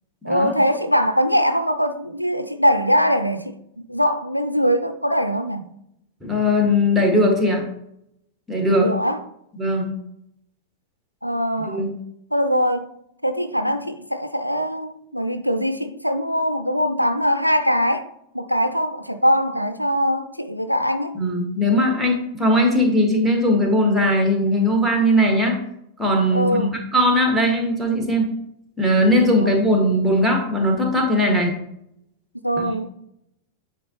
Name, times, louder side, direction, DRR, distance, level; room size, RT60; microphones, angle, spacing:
voice 1, 0.2-3.6 3.9-5.7 8.7-9.2 11.2-11.8 12.3-12.9 13.2-18.1 18.3-21.2 26.3-26.7 29.4-29.5 32.4-32.9, equal, 90° right, 0.3 m, -22 dB
voice 2, 6.2-7.6 8.5-8.9 9.6-9.9 11.6-11.9 21.1-25.6 26.0-28.3 28.8-31.5 32.6-32.7, left 1 dB, ahead, 1.6 m, -19 dB
9.4 x 3.7 x 2.9 m
figure-of-eight pair, 90°, 0 cm